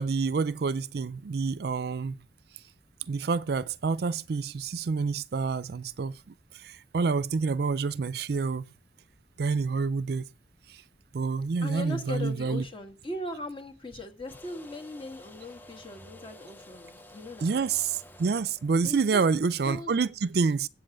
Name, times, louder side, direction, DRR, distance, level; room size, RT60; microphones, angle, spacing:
voice 1, 0.0-2.2 3.1-6.2 6.5-8.6 9.4-10.2 10.7-10.8 11.1-12.6 17.4-20.7, right 4 dB, 55° right, 0.4 m, -28 dB
voice 2, 11.6-17.6 18.8-19.2 19.6-19.9, left 1 dB, 30° left, 1.5 m, -39 dB
sound 1, 14.3-19.7, left 1 dB, 10° left, 0.6 m, -51 dB
8.1 x 7.8 x 7.0 m
head